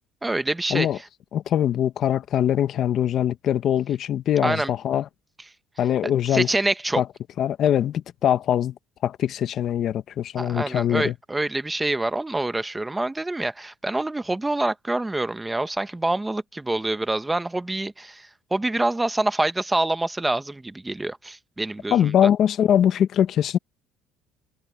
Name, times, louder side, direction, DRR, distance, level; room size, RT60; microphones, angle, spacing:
voice 1, 0.2-0.9 4.4-4.7 6.3-7.0 10.4-22.3, right 2 dB, 10° right, 1.0 m, -26 dB
voice 2, 1.3-5.1 5.8-6.5 7.0-7.1 7.4-8.7 9.0-11.1 21.9-23.6, left 10 dB, 50° left, 1.0 m, -22 dB
cardioid pair, 130°, 0 cm